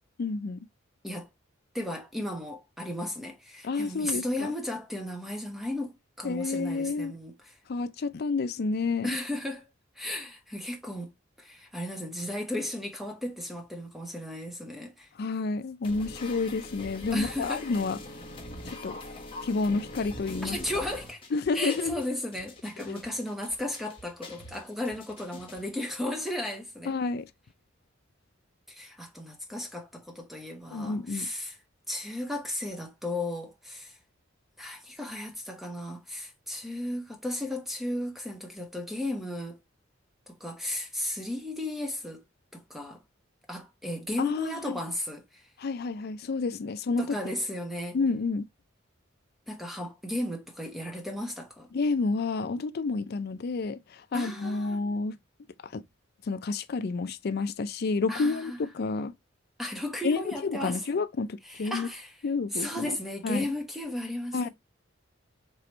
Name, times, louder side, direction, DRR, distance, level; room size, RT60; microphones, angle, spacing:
voice 1, 0.2-0.7 3.6-4.5 6.2-7.1 7.7-9.2 15.2-18.0 18.8-19.0 19.4-20.6 21.3-22.0 22.9-23.0 26.9-27.3 30.7-31.3 44.2-44.8 45.6-47.0 47.9-48.5 51.7-55.2 55.6-55.8 56.3-59.1 60.0-61.9 62.2-63.0 63.2-63.5 64.3-64.5, left 4 dB, 55° left, 0.4 m, -30 dB
voice 2, 1.7-7.5 9.0-9.7 10.0-11.1 11.4-15.1 17.1-17.7 20.4-21.2 21.5-26.9 28.7-31.6 31.9-34.0 34.6-39.6 40.3-42.2 42.5-43.0 43.5-45.5 47.0-48.0 49.5-51.7 54.1-54.8 58.1-58.6 59.6-60.8 61.4-62.2 62.5-64.5, left 1 dB, ahead, 1.0 m, -35 dB
sound 1, 15.8-25.9, left 1 dB, 30° left, 1.1 m, -43 dB
4.7 x 3.0 x 2.9 m
head